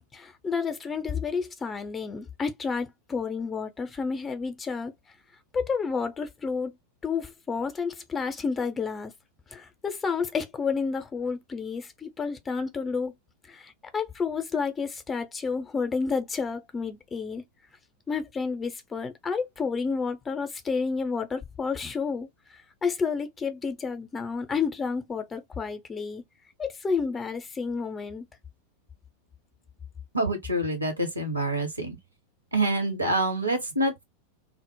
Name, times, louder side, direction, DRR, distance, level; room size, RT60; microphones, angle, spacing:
voice 1, 0.0-4.9 5.5-6.7 7.0-9.1 9.5-13.1 13.5-17.4 18.1-22.3 22.8-26.2 26.6-28.3, left 5 dB, 20° left, 0.5 m, -30 dB
voice 2, 30.1-32.0 32.5-34.0, right 1 dB, 80° right, 0.8 m, -26 dB
2.0 x 2.0 x 3.0 m
figure-of-eight pair, 90°, 0 cm